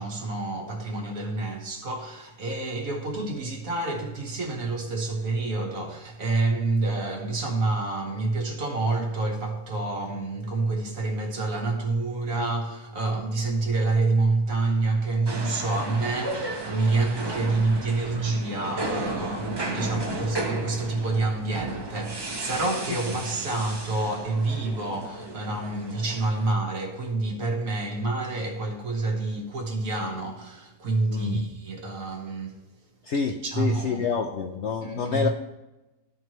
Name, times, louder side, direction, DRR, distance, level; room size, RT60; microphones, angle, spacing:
voice 1, 0.0-32.6 33.4-34.1 34.4-34.5 34.8-35.3, right 3 dB, 55° right, 1.6 m, -28 dB
sound 1, 15.3-26.5, right 2 dB, 30° right, 0.4 m, -34 dB
voice 2, 31.1-31.4 33.0-35.3, left 6 dB, 90° left, 0.6 m, -28 dB
13.5 x 4.5 x 3.0 m
omnidirectional pair, 1.8 m